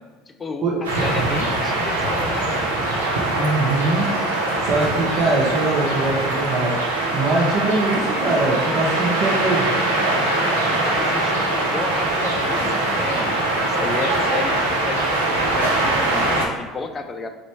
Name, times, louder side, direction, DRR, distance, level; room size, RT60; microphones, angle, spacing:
voice 1, 0.0-2.7 4.8-4.9 10.6-14.5 14.8-17.3, left 4 dB, 25° left, 6 dB, 0.5 m, -32 dB
sound 1, 0.8-16.5, right 2 dB, 85° right, 0.6 m, -22 dB
voice 2, 3.3-4.1 4.6-6.7 7.1-9.7, right 2 dB, 50° right, -3 dB, 0.7 m, -22 dB
3.9 x 3.2 x 3.3 m, 1.3 s
hypercardioid pair, 65°, 0 cm